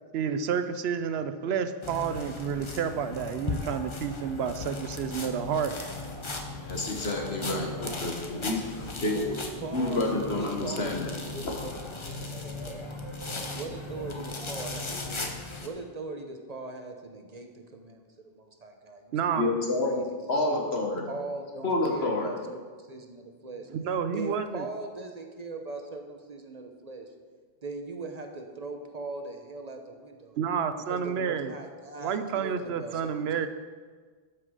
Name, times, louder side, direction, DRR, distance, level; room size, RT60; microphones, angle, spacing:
voice 1, 0.1-5.7 19.1-19.5 23.7-24.6 30.4-31.5 32.0-33.5, right 7 dB, 80° right, 11 dB, 0.9 m, -30 dB
sound 1, 1.8-15.7, left 3 dB, 30° left, 0.9 m, -37 dB
voice 2, 6.6-9.2 9.7-11.1 11.4-11.5 19.4-20.0 20.3-21.1 21.6-22.3, left 2 dB, 85° left, 1 dB, 1.8 m, -29 dB
voice 3, 9.1-12.8 13.5-15.3 15.6-19.6 19.8-20.2 21.1-23.7 24.1-27.1 27.6-30.4 30.9-33.1 33.4-33.5, right 3 dB, 40° right, 4 dB, 1.0 m, -40 dB
12.5 x 5.9 x 4.9 m, 1.5 s
omnidirectional pair, 1.0 m